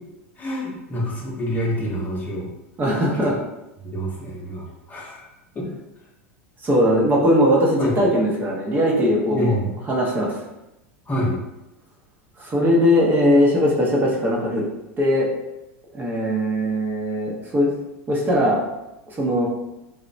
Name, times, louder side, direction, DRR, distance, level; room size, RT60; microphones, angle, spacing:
voice 1, 0.4-2.5 3.8-5.3 5.5-5.7 7.8-8.0 9.3-9.8 11.1-11.4, equal, 20° left, -3 dB, 0.8 m, -27 dB
voice 2, 2.8-3.4 6.6-9.5 9.9-10.4 12.4-14.6 15.0-15.3 15.9-17.7 18.1-18.6 19.1-19.5, equal, 25° right, -3 dB, 0.7 m, -19 dB
2.9 x 2.0 x 2.5 m, 0.94 s
hypercardioid pair, 90°, 7 cm